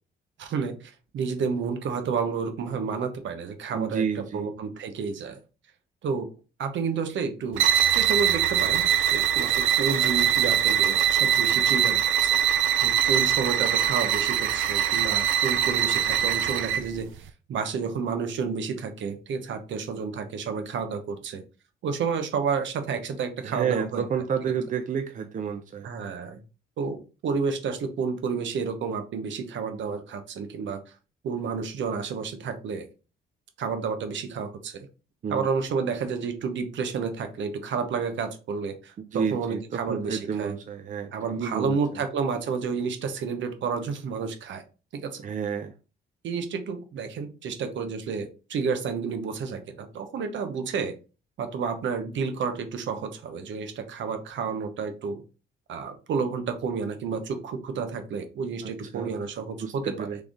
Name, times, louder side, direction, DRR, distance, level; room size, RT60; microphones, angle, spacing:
voice 1, 0.4-4.0 4.3-5.4 6.0-6.3 6.6-7.6 7.9-12.4 12.8-21.4 21.8-24.0 25.8-26.4 26.8-30.8 31.2-32.9 33.6-34.9 35.3-40.5 41.1-44.6 44.9-45.2 46.2-50.9 51.4-55.2 55.7-60.1, right 5 dB, 70° right, 1.0 m, -30 dB
voice 2, 3.7-4.5 23.4-25.9 35.2-35.4 39.1-42.0 45.2-45.7 58.6-59.1 59.6-60.2, right 7 dB, 40° right, 0.6 m, -30 dB
sound 1, 7.5-16.9, right 9 dB, 90° right, 0.5 m, -23 dB
3.8 x 3.5 x 3.5 m
cardioid pair, 90°, 20 cm